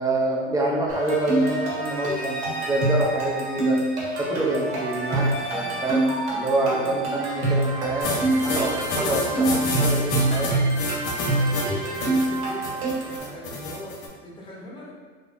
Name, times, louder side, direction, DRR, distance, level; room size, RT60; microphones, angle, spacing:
voice 1, 0.0-3.8 4.2-6.1 6.3-10.5, right 1 dB, 10° right, -2 dB, 0.5 m, -27 dB
sound 1, 0.9-13.2, right 2 dB, 90° right, 1.3 m, -25 dB
voice 2, 6.5-7.0 11.3-14.9, left 1 dB, 15° left, -5 dB, 0.8 m, -42 dB
sound 2, 8.0-14.1, left 2 dB, 50° left, 0.7 m, -29 dB
3.4 x 2.8 x 2.4 m, 1.5 s
supercardioid pair, 115°, 33 cm